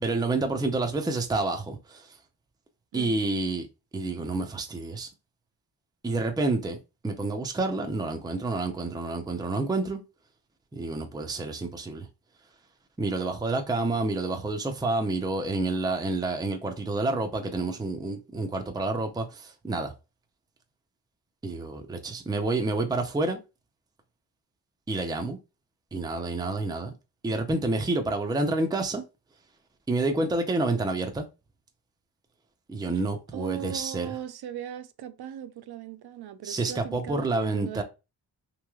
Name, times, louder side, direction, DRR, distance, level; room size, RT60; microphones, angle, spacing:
voice 1, 0.0-2.1 2.9-3.7 3.9-5.1 6.0-6.8 7.0-10.0 10.7-12.1 13.0-19.9 21.4-23.4 24.9-25.4 25.9-26.9 27.2-29.0 29.9-31.3 32.7-34.2 36.4-37.8, right 2 dB, 10° right, 0.5 m, -29 dB
voice 2, 2.9-3.2 32.9-33.0 33.3-37.8, right 10 dB, 60° right, 0.5 m, -38 dB
3.1 x 2.9 x 2.3 m
cardioid pair, 100°, 44 cm